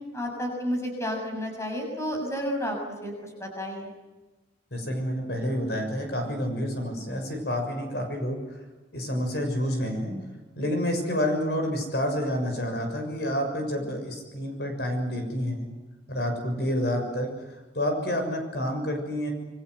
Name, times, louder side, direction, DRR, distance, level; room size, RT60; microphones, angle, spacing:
voice 1, 0.1-3.1 3.4-3.9, equal, 15° left, 2 dB, 7.0 m, -31 dB
voice 2, 4.7-8.4 8.9-10.1 10.5-15.7 16.1-17.3 17.7-19.3, equal, 60° left, 4 dB, 6.7 m, -28 dB
27.5 x 23.5 x 8.0 m, 1.2 s
head